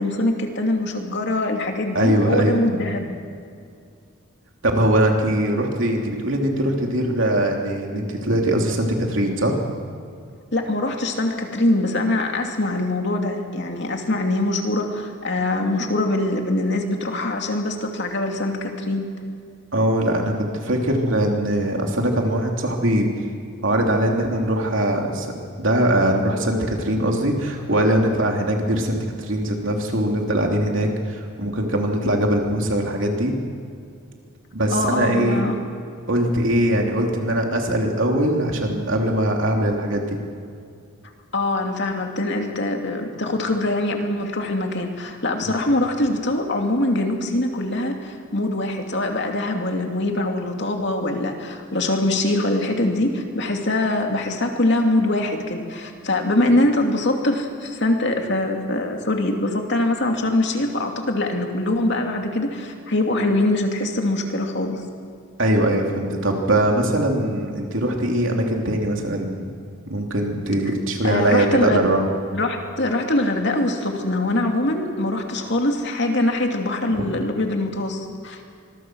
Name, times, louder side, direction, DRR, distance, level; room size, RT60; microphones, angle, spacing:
voice 1, 0.0-3.2 10.5-19.1 34.7-35.5 41.3-64.8 71.0-71.9 72.3-78.4, left 1 dB, 55° left, 3 dB, 2.7 m, -23 dB
voice 2, 1.9-2.6 4.6-9.5 19.7-23.1 23.6-25.3 25.6-33.3 34.5-35.4 36.1-40.2 65.4-69.5 69.9-72.0 76.9-77.1, right 1 dB, 65° right, 1 dB, 3.3 m, -21 dB
25.0 x 22.0 x 6.4 m, 2.3 s
head